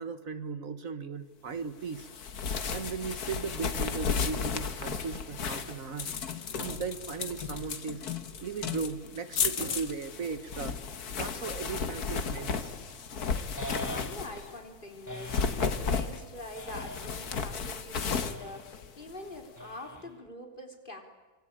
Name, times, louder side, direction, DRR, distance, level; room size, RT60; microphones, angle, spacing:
voice 1, 0.0-2.1 2.7-6.1 6.6-8.0 8.4-10.8 11.1-12.7, right 5 dB, 65° right, 12 dB, 1.7 m, -37 dB
sound 1, 1.9-14.6 15.1-19.4, left 5 dB, 90° left, 2.0 m, -34 dB
sound 2, 13.6-14.5 15.1-15.7 16.5-17.3 18.0-18.7 19.6-20.3, equal, 15° left, 1.3 m, -43 dB
voice 2, 13.8-21.0, left 1 dB, 35° left, 4 dB, 3.7 m, -44 dB
25.5 x 25.0 x 9.0 m, 1.3 s
omnidirectional pair, 1.6 m